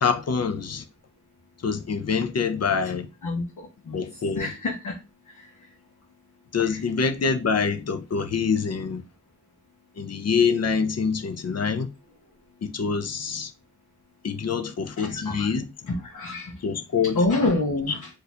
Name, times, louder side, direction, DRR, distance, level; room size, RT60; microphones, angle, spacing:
voice 1, 0.0-0.8 1.6-3.1 3.9-4.5 6.5-9.0 10.0-11.9 12.6-13.5 14.2-15.7 16.6-17.2, left 5 dB, 55° left, 0.5 m, -25 dB
voice 2, 3.9-4.9 5.3-5.5 6.6-6.8 15.0-15.5 15.9-16.6 17.2-18.1, left 2 dB, 90° left, 0.8 m, -27 dB
2.6 x 2.3 x 4.1 m
wide cardioid pair, 55°, 30 cm